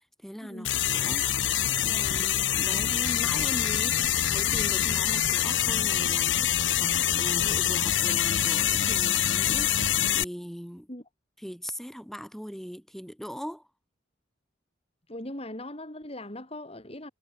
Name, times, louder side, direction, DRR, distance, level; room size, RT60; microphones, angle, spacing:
voice 1, 0.2-1.3 1.8-10.9 11.4-13.7, equal, ahead, 7.4 m, -40 dB
sound 1, 0.6-10.2, left 10 dB, 70° left, 1.4 m, -25 dB
voice 2, 15.1-17.1, left 1 dB, 30° left, 5.1 m, -39 dB
head